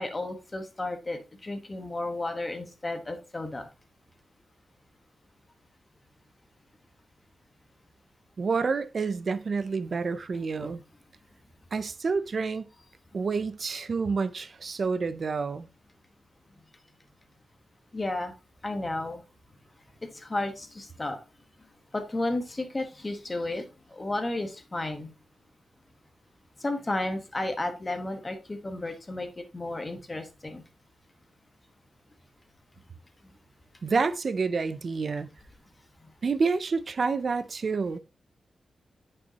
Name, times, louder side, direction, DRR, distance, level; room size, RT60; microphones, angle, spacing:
voice 1, 0.0-3.7 10.6-10.7 17.9-18.3 18.6-19.2 20.0-21.2 21.9-25.1 26.6-30.6, left 2 dB, 20° left, 1.2 m, -33 dB
voice 2, 8.4-10.8 11.7-12.7 13.1-15.7 33.8-35.3 36.2-38.0, right 4 dB, 45° right, 0.5 m, -28 dB
9.5 x 5.4 x 2.9 m
wide cardioid pair, 140°, 0 cm